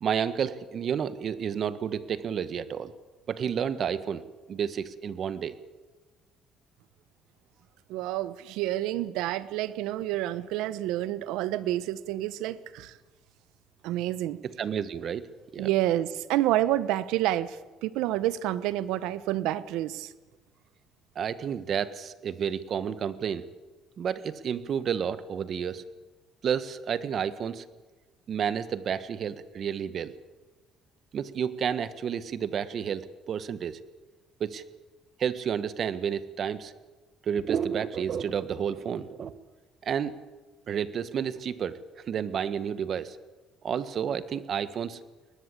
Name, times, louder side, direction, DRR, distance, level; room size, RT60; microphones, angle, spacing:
voice 1, 0.0-2.9 3.3-4.2 4.5-5.6 14.4-15.7 21.1-23.4 24.0-25.8 26.4-27.6 28.3-30.1 31.1-33.8 34.4-34.6 35.2-36.7 37.2-39.3 39.8-40.2 40.7-43.2 43.6-45.0, right 8 dB, 50° right, 14 dB, 1.5 m, -31 dB
voice 2, 7.9-12.9 13.8-14.4 15.6-20.1, right 14 dB, 85° right, 16 dB, 1.0 m, -29 dB
22.0 x 19.5 x 8.4 m, 1.2 s
cardioid pair, 95°, 0 cm